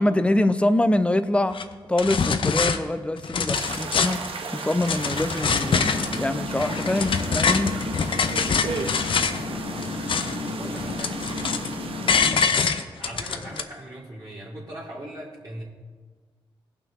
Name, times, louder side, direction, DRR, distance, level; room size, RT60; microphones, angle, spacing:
voice 1, 0.0-1.6 1.9-7.8 12.2-12.4, left 1 dB, 10° left, 11 dB, 0.6 m, -24 dB
Alluminium Cuts Moving, 1.5-1.6 2.0-2.8 3.2-4.3 4.7-6.2 6.6-9.4 9.8-10.5 10.8-11.7 12.1-13.6, left 5 dB, 60° left, 0.6 m, -25 dB
sound 1, 3.5-12.2, right 4 dB, 65° right, 0.9 m, -35 dB
sound 2, 5.4-12.4, left 3 dB, 80° left, 1.2 m, -33 dB
voice 2, 8.1-8.9 9.5-9.8 10.5-11.2 13.0-15.6, right 1 dB, 35° right, -8 dB, 2.1 m, -40 dB
16.5 x 5.9 x 3.6 m, 1.5 s
cardioid pair, 60°, 10 cm